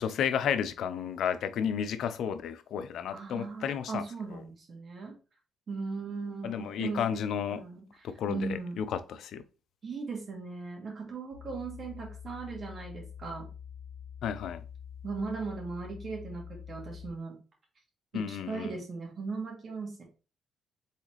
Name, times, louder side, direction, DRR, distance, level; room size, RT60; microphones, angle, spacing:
voice 1, 0.0-4.0 4.3-4.4 6.4-7.6 8.0-9.4 14.2-14.6 18.1-18.8, left 8 dB, 75° left, 0.5 m, -32 dB
voice 2, 3.1-5.1 5.7-7.2 7.5-8.8 9.8-13.5 15.0-17.4 18.1-20.0, right 4 dB, 45° right, 2.0 m, -38 dB
sound 1, 11.3-17.1, left 8 dB, 20° left, 2.1 m, -46 dB
4.1 x 4.0 x 3.1 m
cardioid pair, 90°, 0 cm